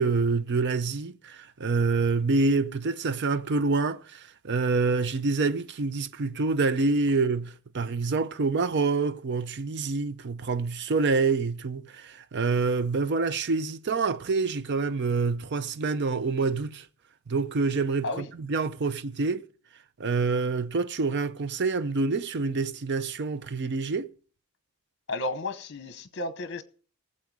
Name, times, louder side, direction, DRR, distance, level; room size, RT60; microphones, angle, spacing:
voice 1, 0.0-16.9 17.3-19.5 20.0-24.1, right 4 dB, 50° right, 0.5 m, -27 dB
voice 2, 25.1-26.6, left 2 dB, 50° left, 1.0 m, -32 dB
18.5 x 7.5 x 4.8 m
head